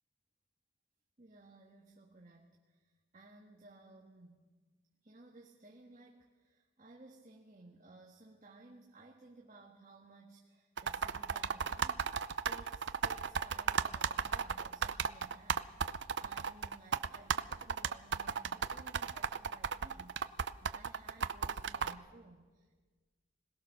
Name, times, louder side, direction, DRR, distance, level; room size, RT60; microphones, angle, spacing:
voice 1, 1.2-4.5 5.0-22.8, right 2 dB, 40° right, -1 dB, 1.7 m, -58 dB
sound 1, 10.8-21.9, right 6 dB, 70° right, 0.6 m, -34 dB
21.5 x 19.0 x 6.5 m, 1.4 s
head